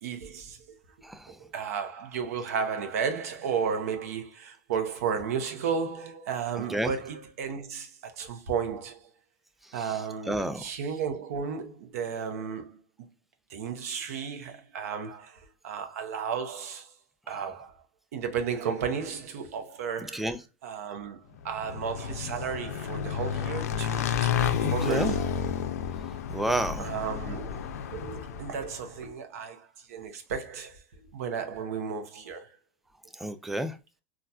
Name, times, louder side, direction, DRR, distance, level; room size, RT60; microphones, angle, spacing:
voice 1, 0.0-0.6 1.4-9.1 9.7-12.8 13.5-16.9 17.3-17.8 18.1-20.3 20.6-24.4 24.7-25.2 26.8-27.7 27.9-32.5, right 6 dB, 80° right, 0.7 m, -33 dB
voice 2, 1.0-1.4 6.7-6.9 9.8-10.0 10.3-10.6 17.3-17.4 20.1-20.4 24.8-25.1 26.3-26.9 33.2-33.8, right 1 dB, ahead, 0.4 m, -30 dB
Motorcycle / Engine, 21.5-28.8, left 8 dB, 90° left, 0.4 m, -31 dB
4.1 x 2.4 x 2.3 m
supercardioid pair, 110°, 8 cm